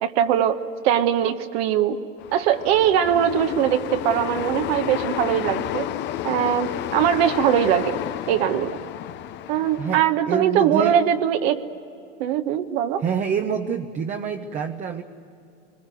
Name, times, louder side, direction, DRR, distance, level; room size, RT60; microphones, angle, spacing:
voice 1, 0.0-2.0 2.3-5.9 6.2-8.0 8.3-8.8 9.5-11.6 12.2-13.0, right 10 dB, 50° right, 7 dB, 1.3 m, -21 dB
sound 1, 2.2-10.1, left 12 dB, 30° left, 0.7 m, -31 dB
voice 2, 9.8-11.0 13.0-15.0, right 7 dB, 20° right, 5 dB, 0.9 m, -26 dB
24.0 x 21.0 x 9.3 m, 2.6 s
hypercardioid pair, 120°, 38 cm